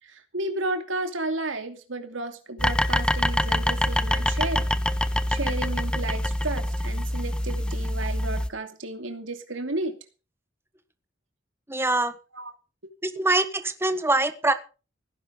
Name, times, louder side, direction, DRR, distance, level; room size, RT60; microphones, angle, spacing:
voice 1, 0.0-4.7 5.3-10.0 12.3-12.5, right 2 dB, 90° right, 7 dB, 2.7 m, -32 dB
sound 1, 2.6-8.5, left 1 dB, 5° left, 0.7 m, -25 dB
voice 2, 11.7-12.1 13.0-14.5, right 2 dB, 15° right, 10 dB, 1.5 m, -23 dB
17.5 x 11.0 x 5.2 m, 0.34 s
head